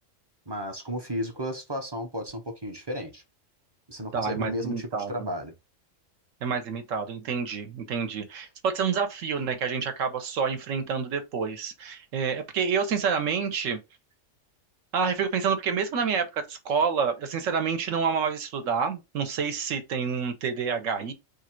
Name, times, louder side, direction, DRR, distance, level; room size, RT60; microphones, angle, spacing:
voice 1, 0.5-3.2 3.9-5.5, equal, 30° right, 0.5 m, -33 dB
voice 2, 4.1-5.3 6.4-13.8 14.9-21.1, right 6 dB, 80° right, 1.2 m, -28 dB
3.5 x 2.6 x 4.3 m
omnidirectional pair, 1.3 m